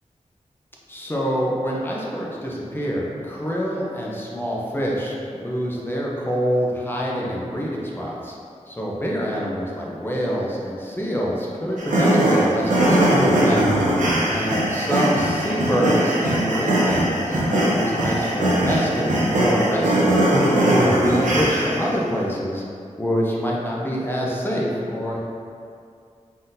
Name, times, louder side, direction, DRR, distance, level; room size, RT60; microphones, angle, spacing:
voice 1, 0.9-8.4 8.7-13.6 14.3-20.2 20.7-22.6 23.0-25.2, equal, 15° left, -4 dB, 0.6 m, -25 dB
sound 1, 11.8-21.9, right 1 dB, 90° right, 0.7 m, -20 dB
4.0 x 3.7 x 2.6 m, 2.4 s
wide cardioid pair, 85°, 13 cm